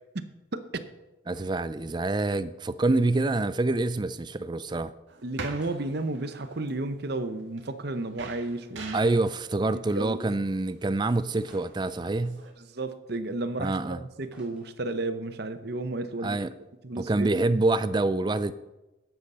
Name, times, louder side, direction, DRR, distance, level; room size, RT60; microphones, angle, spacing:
voice 1, 0.5-0.8 2.9-3.0 5.2-9.1 9.9-10.3 12.7-16.4 16.8-17.3, right 2 dB, 50° right, 0.8 m, -32 dB
sound 1, 1.3-1.8 2.0-2.1 3.1-4.4 4.9-5.0 5.3-7.8 8.1-8.2 8.8-10.0 10.5-10.6 11.5-12.3 12.8-13.8 14.1-15.4 15.8-15.9 16.1-16.3, equal, 5° right, 3.2 m, -60 dB
voice 2, 1.3-4.9 8.9-12.4 13.6-14.0 16.2-16.5 17.0-18.5, right 2 dB, 20° right, 0.4 m, -26 dB
sound 2, 5.1-12.5, right 3 dB, 70° right, 1.5 m, -46 dB
12.5 x 8.2 x 5.5 m
head